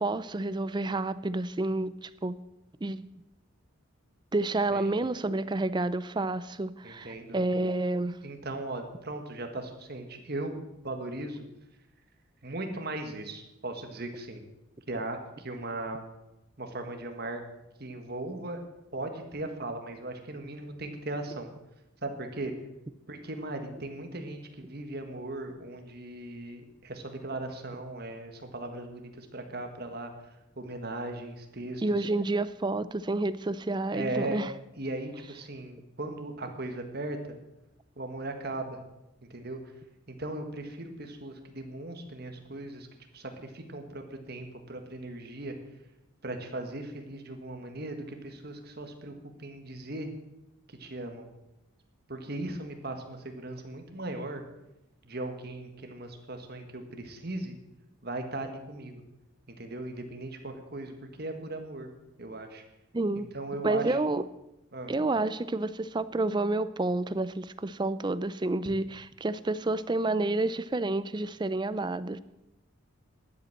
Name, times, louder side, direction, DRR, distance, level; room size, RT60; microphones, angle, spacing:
voice 1, 0.0-2.4 2.8-3.1 4.3-8.2 31.8-34.5 62.9-63.3 63.6-64.3 64.9-72.2, right 2 dB, 20° right, 15 dB, 0.4 m, -29 dB
voice 2, 6.8-7.4 8.2-10.6 10.8-11.4 12.4-14.4 14.9-16.0 16.6-17.4 17.8-18.6 18.9-21.5 22.0-22.5 23.1-30.1 30.5-32.1 33.9-34.4 34.8-37.4 37.9-38.8 39.2-39.6 40.1-42.9 43.1-45.5 46.2-49.1 49.4-50.1 50.7-51.3 52.1-54.4 55.0-57.6 58.0-59.0 59.5-61.9 62.2-62.6 63.3-64.0 64.7-64.9, right 2 dB, 45° right, 5 dB, 1.7 m, -38 dB
12.0 x 8.2 x 7.2 m, 0.93 s
head